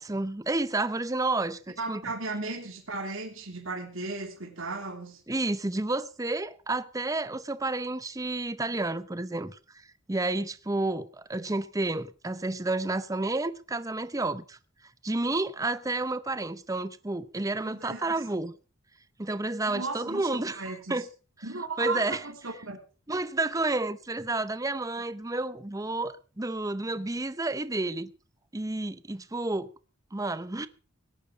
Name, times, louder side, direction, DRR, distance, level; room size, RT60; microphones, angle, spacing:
voice 1, 0.0-2.0 5.3-14.6 15.0-18.5 19.2-21.1 21.8-22.2 23.1-28.1 28.5-29.7 30.1-30.7, right 2 dB, 15° right, 0.6 m, -30 dB
voice 2, 1.8-5.2 17.6-18.1 19.7-20.3 20.6-21.0 21.4-22.8, right 3 dB, 70° right, 3.2 m, -36 dB
18.0 x 11.0 x 5.1 m
head